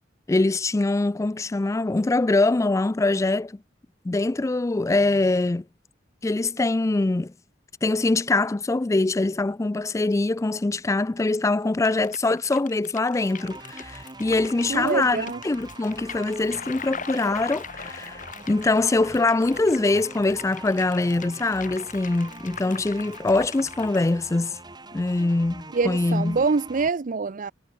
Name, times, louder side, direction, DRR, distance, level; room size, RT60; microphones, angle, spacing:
voice 1, 0.3-3.6 4.0-5.6 6.2-7.3 7.8-24.6 24.9-26.4, left 2 dB, 15° left, 0.3 m, -23 dB
sound 1, 11.8-24.1, left 6 dB, 45° left, 6.5 m, -41 dB
sound 2, 13.2-26.9, right 2 dB, 25° right, 4.0 m, -44 dB
voice 2, 14.7-15.4 25.7-27.5, right 4 dB, 45° right, 0.5 m, -25 dB
head